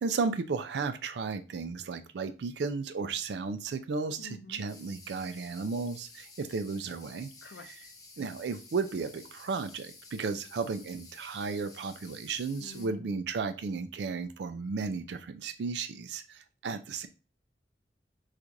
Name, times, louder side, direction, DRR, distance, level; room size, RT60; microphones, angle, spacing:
voice 1, 0.0-7.3 8.2-17.1, right 4 dB, 80° right, 0.4 m, -34 dB
voice 2, 4.2-4.6 7.4-7.9 12.6-13.2, left 2 dB, 85° left, 0.5 m, -48 dB
sound 1, 4.7-12.9, left 3 dB, 20° left, 0.5 m, -52 dB
4.5 x 2.4 x 2.6 m
head